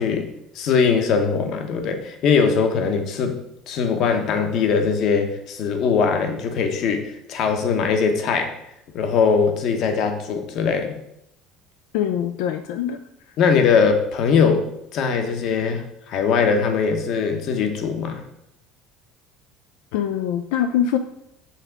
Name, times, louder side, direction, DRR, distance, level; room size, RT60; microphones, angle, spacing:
voice 1, 0.0-3.3 3.7-8.5 8.9-10.9 13.4-14.7 14.9-18.2, left 5 dB, 45° left, 6 dB, 0.9 m, -21 dB
voice 2, 11.9-13.0 19.9-21.0, left 9 dB, 85° left, 7 dB, 0.4 m, -23 dB
5.8 x 3.5 x 5.9 m, 0.79 s
cardioid pair, 165°, 0 cm